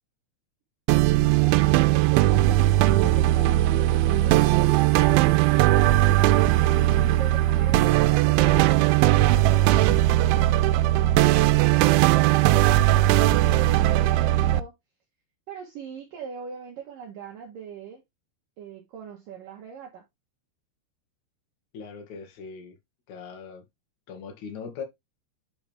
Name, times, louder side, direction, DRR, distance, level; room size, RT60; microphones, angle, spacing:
sound 1, 0.9-14.6, right 15 dB, 90° right, 3.0 m, -19 dB
voice 1, 1.3-4.7 7.1-14.7 15.5-18.0 18.6-20.0, right 6 dB, 65° right, 2.4 m, -41 dB
voice 2, 21.7-22.7 23.1-23.6 24.1-24.8, left 6 dB, 50° left, 2.5 m, -39 dB
8.8 x 4.8 x 3.4 m
omnidirectional pair, 5.3 m